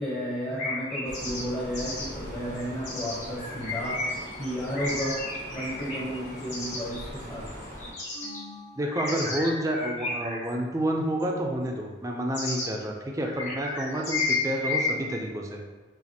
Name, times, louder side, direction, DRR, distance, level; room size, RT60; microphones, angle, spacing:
voice 1, 0.0-4.0 4.4-5.2 5.5-7.5, equal, 25° left, -7 dB, 0.9 m, -32 dB
sound 1, 0.6-1.4 1.7-2.1 2.8-7.1 7.5-8.4 8.8-10.5 11.2-11.3 12.3-12.7 13.2-14.9, left 3 dB, 40° left, 1.2 m, -32 dB
sound 2, 1.0-7.9, equal, 60° left, 1.4 m, -41 dB
sound 3, 8.1-9.8, left 1 dB, 80° left, 1.5 m, -47 dB
voice 2, 8.8-15.6, right 1 dB, 15° right, 1 dB, 0.4 m, -29 dB
5.7 x 2.5 x 2.8 m, 1.2 s
head